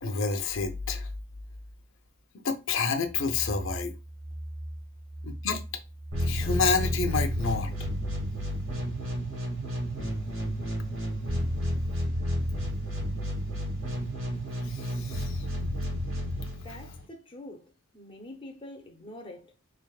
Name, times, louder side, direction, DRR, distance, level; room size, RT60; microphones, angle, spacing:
voice 1, 0.0-1.1 2.4-3.9 5.2-5.6 6.2-7.7 14.7-15.4, left 4 dB, 70° left, 0.6 m, -29 dB
sound 1, 3.0-10.8, right 1 dB, 55° right, 0.7 m, -42 dB
sound 2, 6.1-17.0, equal, 90° right, 2.0 m, -31 dB
voice 2, 16.5-19.5, left 1 dB, 25° left, 0.6 m, -45 dB
3.9 x 3.3 x 2.3 m
head